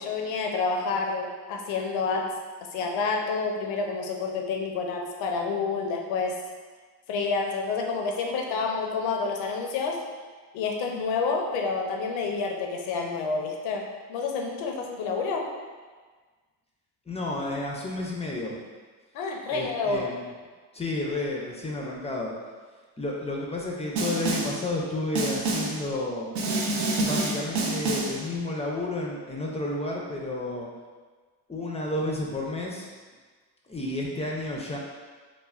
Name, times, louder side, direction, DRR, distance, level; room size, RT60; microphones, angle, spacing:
voice 1, 0.0-2.3 2.6-6.4 7.1-10.0 10.5-15.5 19.1-20.1, left 4 dB, 80° left, 2 dB, 0.6 m, -29 dB
voice 2, 17.1-18.6 19.5-20.3 20.7-22.3 23.0-26.3 27.0-30.7 31.5-32.8 33.7-34.8, left 2 dB, 15° left, -2 dB, 0.3 m, -31 dB
Snare drum, 24.0-24.6 25.2-25.8 26.4-28.2, right 2 dB, 80° right, 0.6 m, -27 dB
3.1 x 2.1 x 2.3 m, 1.4 s
supercardioid pair, 70°, 45 cm